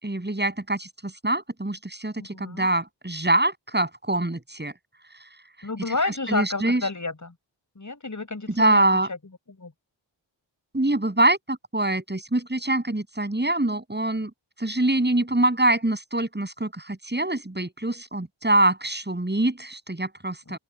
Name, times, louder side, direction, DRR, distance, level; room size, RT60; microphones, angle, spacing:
voice 1, 0.0-4.7 5.9-6.9 8.5-9.1 10.7-14.3 14.6-20.6, right 1 dB, 20° right, 7.5 m, -24 dB
voice 2, 2.2-2.7 5.6-7.3 7.8-9.2 9.6-9.7 20.5-20.6, left 3 dB, 40° left, 6.9 m, -30 dB
open air
wide cardioid pair, 65°, 47 cm